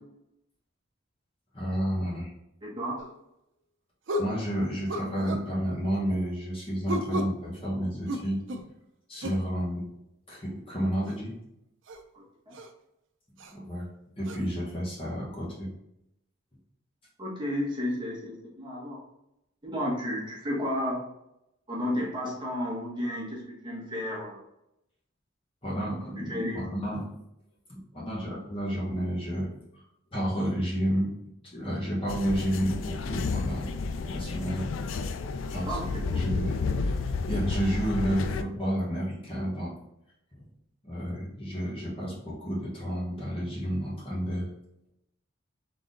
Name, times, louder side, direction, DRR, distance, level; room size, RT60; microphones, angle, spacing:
voice 1, 1.5-2.3 4.2-8.4 9.1-9.8 10.3-11.3 13.5-13.8 14.2-15.7 25.6-27.1 27.7-29.5 29.7-29.8 30.1-31.1 31.5-33.7 34.0-34.7 35.5-36.5 36.8-39.7 40.3-40.4 40.8-44.5, equal, 25° left, -5 dB, 1.3 m, -31 dB
voice 2, 2.6-2.9 12.1-12.5 17.2-19.0 19.7-21.0 21.7-24.4 26.3-26.6 35.6-35.8 36.1-36.2, equal, 20° right, -5 dB, 1.2 m, -32 dB
sound 1, 3.0-3.1 4.1-4.4 4.9-5.5 6.9-7.4 8.1-8.7 9.2-9.5 11.1-11.2 11.9-12.0 12.5-12.7 13.4-13.5 14.2-14.4, equal, 65° right, 0.5 m, -33 dB
sound 2, 32.1-38.4, left 4 dB, 75° left, 0.4 m, -31 dB
3.9 x 3.5 x 3.8 m, 0.84 s
head